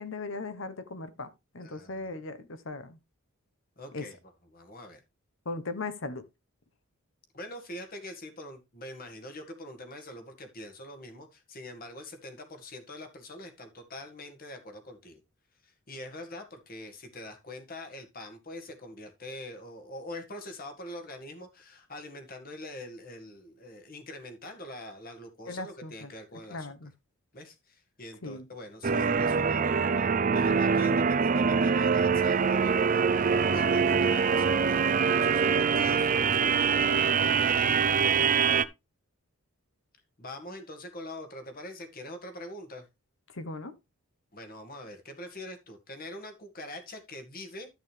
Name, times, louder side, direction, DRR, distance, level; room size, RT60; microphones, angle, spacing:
voice 1, 0.0-3.0 3.9-4.0 5.4-6.2 25.5-26.1 26.5-26.9 28.2-28.5 43.3-43.7, left 3 dB, 55° left, 1.0 m, -38 dB
voice 2, 1.6-2.1 3.8-4.2 4.5-5.0 7.3-15.2 15.6-26.7 27.3-37.8 40.2-42.9 44.3-47.7, left 1 dB, 40° left, 1.9 m, -44 dB
sound 1, 28.8-38.6, right 6 dB, 35° right, 0.4 m, -24 dB
12.5 x 6.3 x 3.3 m
head